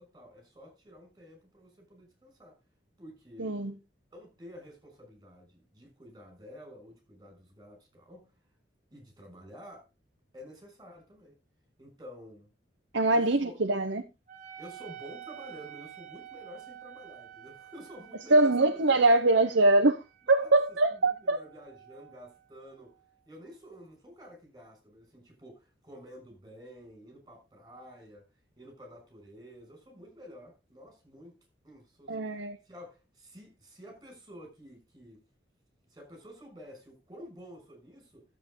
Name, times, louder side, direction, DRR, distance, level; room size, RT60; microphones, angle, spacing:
voice 1, 0.0-2.6 3.0-3.5 4.1-8.3 8.9-9.9 10.3-11.3 11.8-12.5 13.1-13.6 14.6-19.2 20.3-20.5 20.8-22.9 23.3-28.3 28.6-31.3 31.6-32.2 32.6-35.2 35.9-38.2, equal, 20° right, 6.1 m, -50 dB
voice 2, 3.4-3.7 12.9-14.0 18.3-20.0 20.3-21.4 32.1-32.6, right 2 dB, 70° right, 1.0 m, -23 dB
Wind instrument woodwind instrument, 14.3-23.2, right 10 dB, 45° right, 1.8 m, -50 dB
13.0 x 7.9 x 3.8 m
head